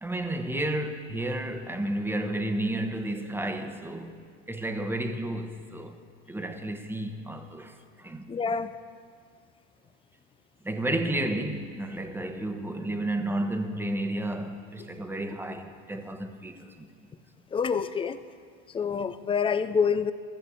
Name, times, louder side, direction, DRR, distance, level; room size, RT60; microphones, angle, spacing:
voice 1, 0.0-4.2 4.5-6.0 6.3-8.3 8.6-8.7 10.6-16.9, right 1 dB, 5° right, 1.0 m, -32 dB
voice 2, 8.3-8.7 17.5-18.2 18.7-20.1, left 6 dB, 15° left, 0.4 m, -26 dB
14.0 x 7.5 x 8.1 m
supercardioid pair, 110°, 36 cm